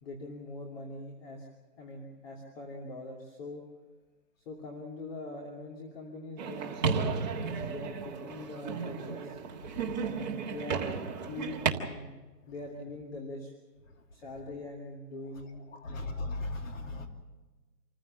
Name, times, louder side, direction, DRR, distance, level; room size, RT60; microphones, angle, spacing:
voice 1, 0.0-1.5 1.8-3.6 4.4-9.4 10.0-10.9 11.1-12.1 12.5-13.5 14.1-16.1, left 2 dB, 40° left, -1 dB, 2.9 m, -43 dB
sound 1, 6.4-11.7, right 5 dB, 25° right, 1.7 m, -33 dB
voice 2, 9.6-10.2 12.5-12.6 13.9-14.6 15.3-17.1, left 2 dB, 55° left, 3 dB, 3.0 m, -40 dB
27.0 x 15.0 x 7.1 m, 1.2 s
hypercardioid pair, 160°, 47 cm